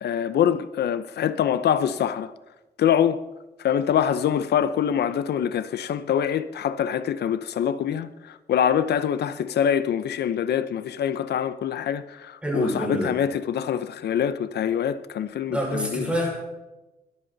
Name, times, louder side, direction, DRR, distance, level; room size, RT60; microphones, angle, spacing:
voice 1, 0.0-2.3 2.8-3.2 3.6-16.1, left 9 dB, 85° left, 0.7 m, -24 dB
voice 2, 12.4-13.1 15.5-16.3, equal, 5° right, 5.5 m, -26 dB
21.5 x 13.0 x 4.0 m
wide cardioid pair, 180°, 17 cm